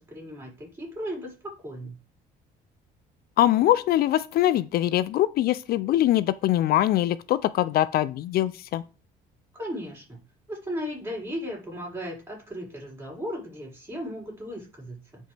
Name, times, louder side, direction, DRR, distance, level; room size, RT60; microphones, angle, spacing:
voice 1, 0.1-1.9 9.5-10.2 10.5-15.3, equal, 15° right, 5.0 m, -36 dB
voice 2, 3.4-8.8, left 13 dB, 65° left, 0.4 m, -23 dB
10.0 x 5.4 x 3.4 m
cardioid pair, 110°, 17 cm